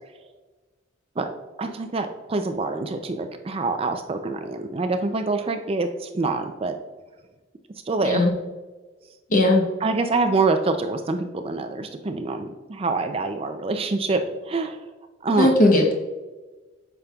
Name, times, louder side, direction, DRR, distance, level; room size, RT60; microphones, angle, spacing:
voice 1, 1.6-6.7 7.9-8.3 9.8-14.8 15.2-15.6, right 3 dB, 30° right, 7 dB, 0.4 m, -25 dB
voice 2, 9.3-9.6 15.4-15.9, left 1 dB, 40° left, 1 dB, 0.9 m, -17 dB
8.5 x 5.9 x 2.3 m, 1.2 s
head